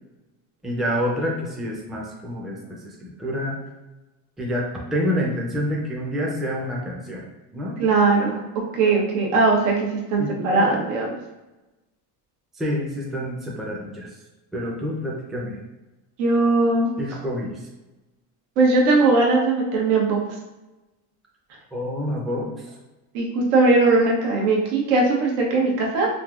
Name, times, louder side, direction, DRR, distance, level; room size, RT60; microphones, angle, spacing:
voice 1, 0.6-3.6 4.4-7.2 7.5-7.8 10.2-10.7 12.5-14.1 14.5-15.6 17.0-17.5 21.7-22.5, equal, ahead, -3 dB, 0.4 m, -27 dB
voice 2, 7.8-8.4 8.7-11.1 16.2-16.9 18.6-20.2 23.1-26.1, right 3 dB, 85° right, -1 dB, 1.0 m, -19 dB
3.7 x 2.6 x 2.4 m, 1.0 s
cardioid pair, 125°, 43 cm